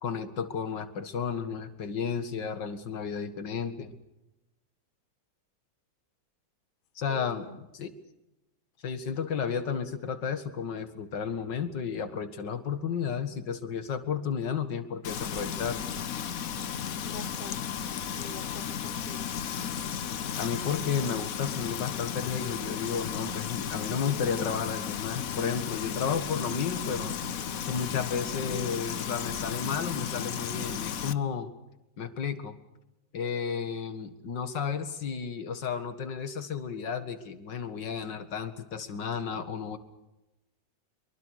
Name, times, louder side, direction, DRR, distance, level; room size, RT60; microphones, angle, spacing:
voice 1, 0.0-4.0 7.0-7.9 8.8-15.8 20.4-27.2 27.6-31.5 32.0-32.6 33.1-39.8, left 6 dB, 75° left, 10 dB, 2.5 m, -32 dB
voice 2, 7.1-7.6 17.0-17.7 18.2-19.3, left 1 dB, 30° left, 9 dB, 1.4 m, -46 dB
Frying (food), 15.0-31.1, left 8 dB, 55° left, 1.3 m, -34 dB
25.0 x 23.5 x 6.6 m, 0.93 s
omnidirectional pair, 1.9 m